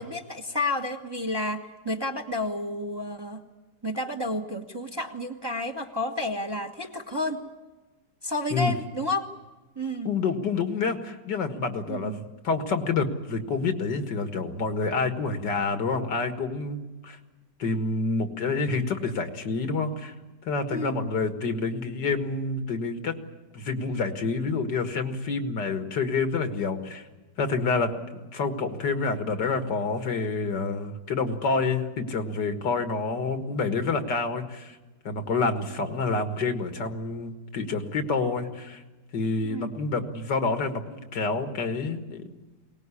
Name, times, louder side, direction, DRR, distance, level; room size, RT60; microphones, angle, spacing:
voice 1, 0.0-3.4 3.8-7.4 8.2-9.3 9.7-10.1 11.9-12.2 20.7-21.0 39.4-39.7, left 1 dB, 15° right, 5 dB, 1.2 m, -31 dB
voice 2, 10.1-16.8 17.0-17.2 17.6-20.1 20.4-23.1 23.5-27.1 27.4-27.9 28.3-34.8 35.1-38.8 39.1-42.2, left 4 dB, 80° left, 8 dB, 2.3 m, -28 dB
22.5 x 19.0 x 9.8 m, 1.2 s
omnidirectional pair, 1.8 m